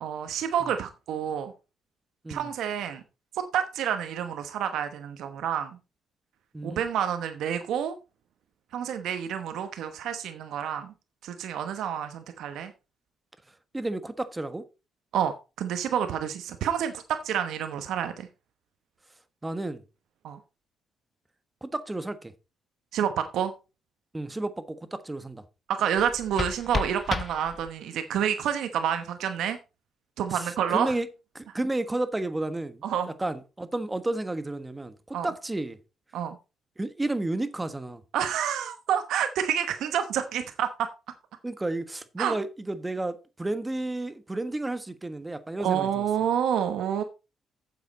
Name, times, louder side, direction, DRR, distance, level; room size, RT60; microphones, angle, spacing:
voice 1, 0.0-1.5 2.3-3.0 3.3-5.8 6.6-7.9 8.7-10.9 11.2-12.7 15.1-18.3 20.2-20.4 22.9-23.5 25.7-29.6 30.2-31.0 32.8-33.1 35.1-35.3 36.1-36.4 38.1-40.9 42.2-42.4 45.6-47.0, right 9 dB, 80° right, 1.0 m, -28 dB
voice 2, 6.5-6.9 13.7-14.6 19.4-19.8 21.6-22.3 24.1-25.4 30.3-31.1 31.3-32.8 33.2-35.8 36.8-38.0 41.4-46.1, right 2 dB, 15° right, 1.3 m, -32 dB
sound 1, 25.9-28.0, left 4 dB, 35° left, 1.0 m, -33 dB
9.3 x 7.3 x 4.2 m
cardioid pair, 90°, 0 cm